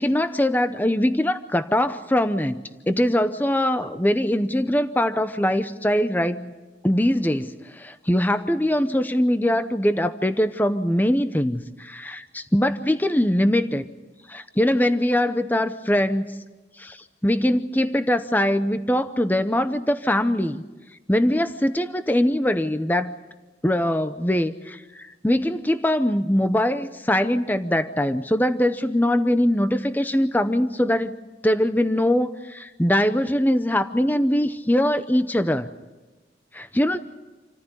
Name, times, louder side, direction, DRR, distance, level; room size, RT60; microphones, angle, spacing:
voice 1, 0.0-6.5 6.8-13.9 14.3-16.3 16.8-20.6 21.1-23.1 23.6-31.1 31.4-35.7 36.5-37.0, left 1 dB, 10° left, 10 dB, 0.7 m, -22 dB
28.0 x 14.5 x 9.9 m, 1.2 s
head